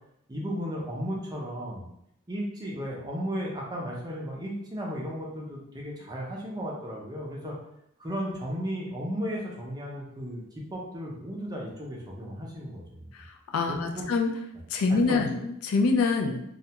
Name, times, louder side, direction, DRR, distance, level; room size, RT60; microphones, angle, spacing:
voice 1, 0.3-1.9 2.3-7.6 8.0-13.1 13.7-14.1 14.9-15.2, equal, 20° right, -3 dB, 0.5 m, -35 dB
voice 2, 13.5-14.3 14.7-16.4, left 4 dB, 80° left, 3 dB, 0.4 m, -25 dB
2.4 x 2.1 x 2.8 m, 0.77 s
head